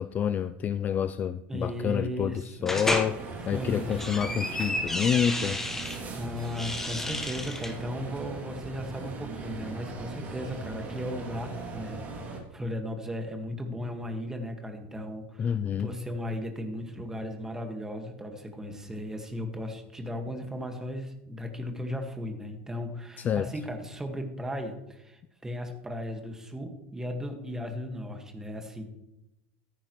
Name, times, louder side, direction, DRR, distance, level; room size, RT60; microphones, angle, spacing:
voice 1, 0.0-6.1 15.4-15.9 23.2-23.5, left 8 dB, 25° left, 13 dB, 0.4 m, -28 dB
voice 2, 1.5-2.7 3.2-4.0 6.1-28.8, left 1 dB, 10° right, 4 dB, 1.7 m, -36 dB
sound 1, 2.7-3.1 3.8-6.0 6.4-7.7, left 1 dB, 5° left, 1.2 m, -31 dB
sound 2, 3.1-12.4, right 3 dB, 25° right, 2.5 m, -39 dB
14.0 x 9.9 x 3.1 m, 0.89 s
supercardioid pair, 135°, 6 cm